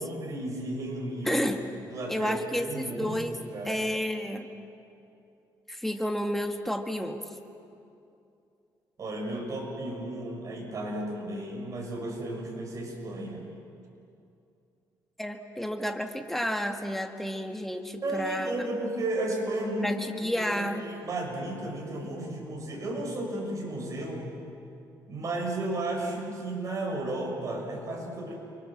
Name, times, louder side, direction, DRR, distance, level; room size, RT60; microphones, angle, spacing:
voice 1, 0.0-1.5 1.9-3.9 9.0-13.5 18.0-20.0 20.4-24.3 25.1-28.3, right 1 dB, 45° right, 0 dB, 6.5 m, -33 dB
voice 2, 1.2-1.6 2.1-3.4 3.6-4.5 5.7-7.2 15.2-18.5 19.8-20.8, equal, 5° left, 5 dB, 1.9 m, -31 dB
29.5 x 24.0 x 7.5 m, 2.6 s
cardioid pair, 115°, 8 cm